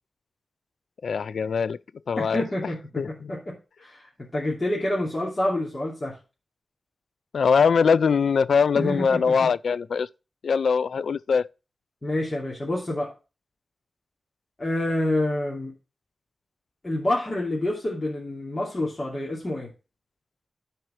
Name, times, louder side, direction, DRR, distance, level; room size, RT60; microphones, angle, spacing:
voice 1, 1.0-1.8 2.1-2.7 3.0-3.3 7.3-10.1 10.4-11.5, left 6 dB, 85° left, 0.3 m, -22 dB
voice 2, 2.2-3.0 3.3-6.2 8.7-9.2 12.0-13.1 14.6-15.7 16.8-19.7, left 1 dB, 35° left, 2.8 m, -28 dB
11.0 x 4.6 x 4.4 m
cardioid pair, 60°, 0 cm